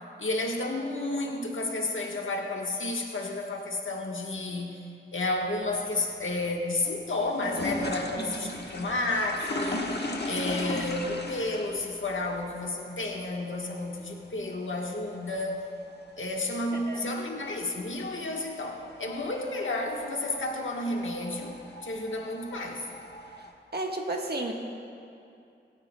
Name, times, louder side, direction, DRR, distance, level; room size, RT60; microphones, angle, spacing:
voice 1, 0.2-4.9 5.1-9.9 10.2-15.6 16.2-21.5 21.8-22.9, left 2 dB, 80° left, 0 dB, 1.3 m, -31 dB
sound 1, 5.3-23.5, left 1 dB, 60° left, 1.3 m, -39 dB
voice 2, 8.2-8.5 16.7-17.1 23.7-24.5, right 2 dB, 55° right, 1 dB, 1.3 m, -33 dB
26.0 x 9.5 x 2.2 m, 2.6 s
wide cardioid pair, 55°, 20 cm